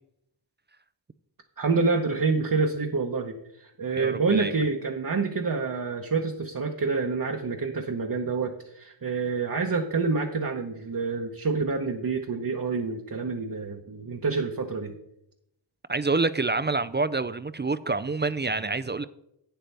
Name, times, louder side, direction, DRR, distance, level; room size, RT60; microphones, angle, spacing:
voice 1, 1.6-14.9, right 4 dB, 45° right, 2 dB, 0.9 m, -27 dB
voice 2, 4.0-4.5 15.9-19.0, right 3 dB, 25° right, 13 dB, 0.4 m, -27 dB
11.5 x 9.1 x 3.4 m, 0.79 s
wide cardioid pair, 80°, 46 cm